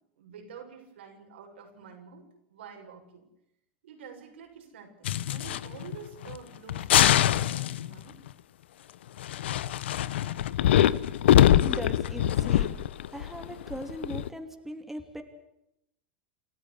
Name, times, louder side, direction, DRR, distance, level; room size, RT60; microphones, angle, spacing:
voice 1, 0.2-3.2 3.8-8.2, right 6 dB, 85° right, 3 dB, 6.7 m, -48 dB
sound 1, 5.1-6.0 6.2-6.4 6.7-8.0 9.2-14.3, left 12 dB, 85° left, 0.9 m, -23 dB
voice 2, 11.6-12.8 13.1-15.2, right 1 dB, 5° right, 5 dB, 3.0 m, -39 dB
29.0 x 13.5 x 10.0 m, 0.81 s
hypercardioid pair, 110°, 6 cm